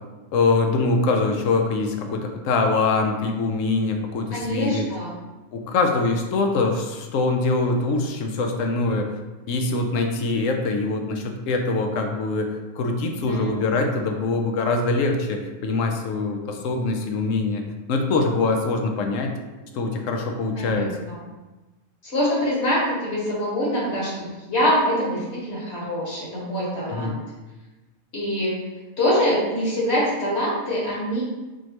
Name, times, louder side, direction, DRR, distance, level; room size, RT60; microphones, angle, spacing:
voice 1, 0.3-4.8 5.5-9.1 9.5-17.6 17.9-19.3 19.7-20.9 26.9-27.2, left 3 dB, 70° left, 4 dB, 0.9 m, -23 dB
voice 2, 4.3-5.1 13.1-13.6 20.6-21.2 22.0-27.2 28.1-28.6 29.0-31.2, equal, 45° left, -7 dB, 1.6 m, -24 dB
4.2 x 3.1 x 2.9 m, 1.1 s
omnidirectional pair, 1.5 m